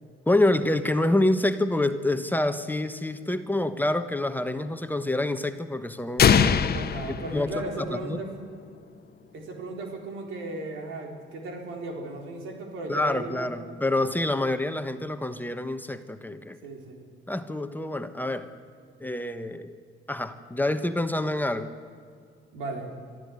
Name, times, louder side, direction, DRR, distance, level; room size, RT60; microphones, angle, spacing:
voice 1, 0.3-6.5 7.3-7.5 8.0-8.2 12.9-16.6 17.3-18.5 19.0-19.7 20.1-21.7, left 1 dB, 10° left, 9 dB, 1.2 m, -27 dB
sound 1, 6.2-8.1, left 7 dB, 50° left, 1.0 m, -22 dB
voice 2, 6.7-8.3 9.3-13.7 16.6-17.1 22.5-22.9, right 2 dB, 85° right, 2 dB, 4.3 m, -36 dB
24.0 x 13.5 x 9.6 m, 2.2 s
cardioid pair, 90°, 20 cm